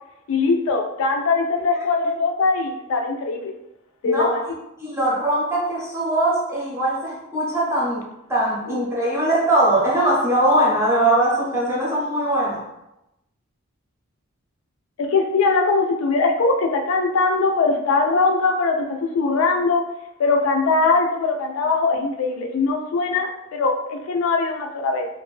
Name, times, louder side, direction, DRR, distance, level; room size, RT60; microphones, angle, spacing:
voice 1, 0.3-3.5 4.0-4.4 8.7-8.8 9.1-9.2 15.0-19.8 20.2-25.1, left 3 dB, 65° left, 3 dB, 0.3 m, -21 dB
voice 2, 4.0-4.4 4.8-8.0 8.3-12.6, right 1 dB, 10° right, -5 dB, 0.6 m, -21 dB
2.5 x 2.1 x 3.1 m, 0.86 s
head